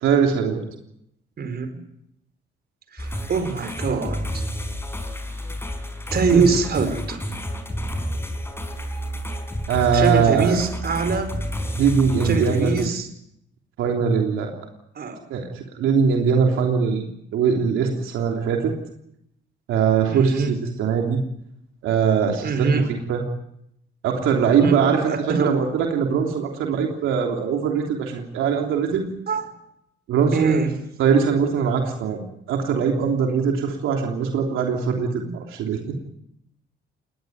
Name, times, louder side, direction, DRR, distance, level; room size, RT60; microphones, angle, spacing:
voice 1, 0.0-0.6 6.3-6.4 9.7-10.6 11.7-12.9 13.8-14.5 15.3-17.1 17.3-18.7 19.7-21.2 21.8-23.2 24.0-25.1 25.4-29.1 30.1-30.6 31.0-32.2 32.5-35.8, right 6 dB, 90° right, 2 dB, 3.3 m, -21 dB
voice 2, 2.9-4.4 6.1-7.2 9.9-11.3 12.2-13.1 14.9-15.2 20.1-20.5 22.4-22.9 24.6-25.5 29.3-29.5 30.3-30.7, right 4 dB, 55° right, 9 dB, 4.7 m, -23 dB
sound 1, 3.0-12.9, equal, 10° left, 4.9 m, -30 dB
20.0 x 19.5 x 9.3 m, 0.75 s
cardioid pair, 90°, 20 cm